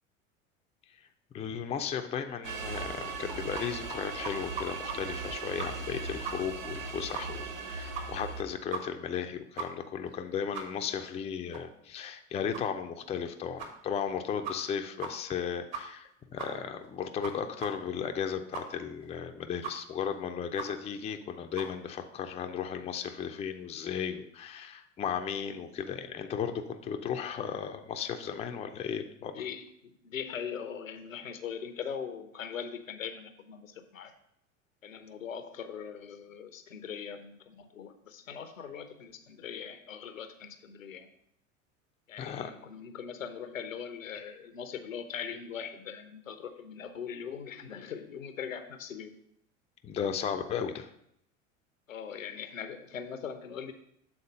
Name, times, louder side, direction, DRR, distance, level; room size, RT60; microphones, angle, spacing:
voice 1, 1.3-29.3 42.2-42.5 44.1-44.2 49.8-50.9, left 7 dB, 15° left, 6 dB, 0.5 m, -35 dB
sound 1, 2.4-8.4, right 4 dB, 80° right, 0.8 m, -38 dB
sound 2, 2.7-3.6 3.9-4.0 4.2-5.0 5.2-5.3 5.6-6.0 6.2-6.3 6.7-6.8 7.1-7.2 7.5-7.6 7.9-8.3 8.7-8.8 9.1-9.2 9.6-9.7 10.1-10.2 10.5-10.6 11.0-11.1 11.5-11.6 12.0-12.1 12.5-12.6 13.1-13.2 13.6-13.7 14.1-14.2 14.4-14.7 15.0-15.1 15.4-15.5 15.7-16.1 16.4-16.5 16.8-16.9 17.2-17.3 17.6-17.7 18.0-18.1 18.5-18.6 19.0-19.1 19.6-19.7 20.0-20.1 20.6-20.7 21.0-21.1 21.5-21.7, right 6 dB, 45° right, 1.4 m, -38 dB
voice 2, 29.2-34.1 34.8-41.1 42.1-49.1 51.9-53.7, left 7 dB, 85° left, 9 dB, 0.8 m, -41 dB
7.2 x 3.8 x 5.1 m, 0.74 s
figure-of-eight pair, 80°, 39 cm